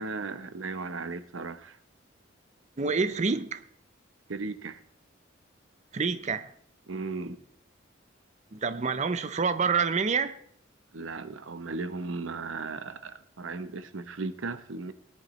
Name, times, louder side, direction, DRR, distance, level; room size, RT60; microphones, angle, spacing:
voice 1, 0.0-1.8 4.3-4.8 6.9-7.4 10.9-14.9, right 3 dB, 90° right, 12 dB, 0.9 m, -36 dB
voice 2, 2.8-3.6 5.9-6.5 8.5-10.4, right 5 dB, 35° right, 11 dB, 0.6 m, -27 dB
19.0 x 11.0 x 3.1 m, 0.62 s
head